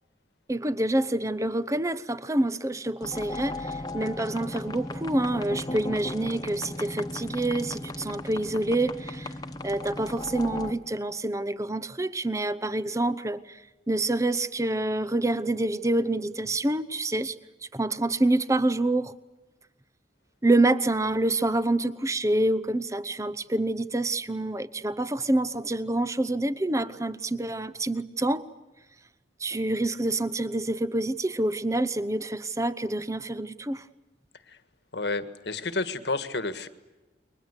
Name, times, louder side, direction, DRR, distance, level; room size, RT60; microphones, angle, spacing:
voice 1, 0.5-9.3 9.6-13.6 13.9-17.4 17.7-19.1 20.4-28.4 29.4-33.8, right 2 dB, 15° right, 14 dB, 0.9 m, -27 dB
sound 1, 3.0-10.7, left 2 dB, 20° left, 1.4 m, -36 dB
voice 2, 34.9-36.7, left 3 dB, 75° left, 11 dB, 1.7 m, -30 dB
29.5 x 23.0 x 8.2 m, 1.1 s
head